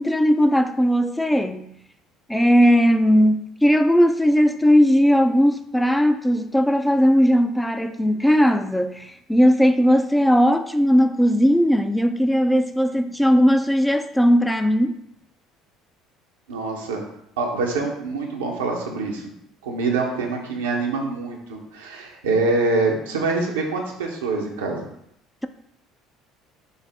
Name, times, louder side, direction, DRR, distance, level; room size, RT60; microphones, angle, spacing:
voice 1, 0.0-1.7 2.3-15.0, equal, 5° left, 0.3 m, -18 dB
voice 2, 16.5-17.1 17.4-19.4 19.6-24.9, right 3 dB, 80° right, 0.7 m, -25 dB
5.5 x 2.0 x 3.4 m
hypercardioid pair, 60°, 0 cm